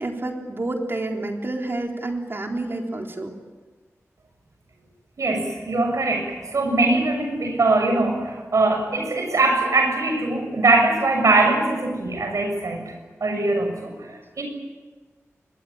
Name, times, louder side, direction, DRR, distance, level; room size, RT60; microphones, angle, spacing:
voice 1, 0.0-3.3, right 2 dB, 45° right, 2 dB, 3.9 m, -29 dB
voice 2, 5.2-12.8 13.2-14.4, right 2 dB, 85° right, 4 dB, 7.0 m, -21 dB
25.0 x 20.5 x 8.8 m, 1.3 s
wide cardioid pair, 95°, 5 cm